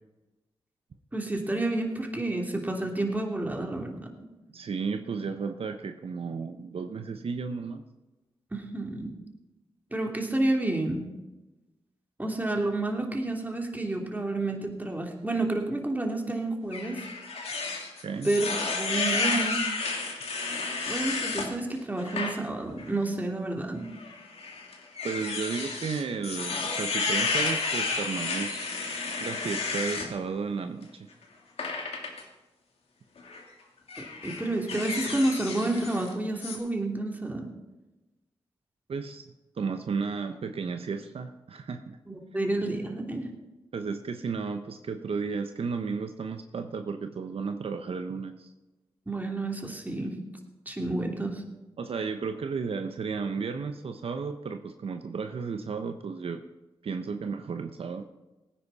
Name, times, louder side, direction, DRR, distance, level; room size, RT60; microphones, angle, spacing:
voice 1, 1.1-4.0 8.5-9.1 9.9-11.0 12.2-17.0 18.2-18.5 18.7-19.6 20.9-23.8 34.0-37.5 42.1-43.3 49.1-50.1 50.7-51.4 57.1-57.2, right 2 dB, 15° right, 1 dB, 3.0 m, -30 dB
voice 2, 4.5-7.8 18.0-18.3 25.0-28.7 29.2-31.1 38.9-39.2 39.6-42.0 43.7-48.5 51.8-56.4 56.8-58.0, right 5 dB, 70° right, 7 dB, 0.9 m, -33 dB
sound 1, 16.7-21.5 22.0-22.3 22.8-22.9 23.9-30.1 31.6-32.2 33.2-33.4 33.9-36.1 36.4-36.6, left 4 dB, 80° left, 2.3 m, -31 dB
18.0 x 10.0 x 4.2 m, 1.1 s
cardioid pair, 50°, 10 cm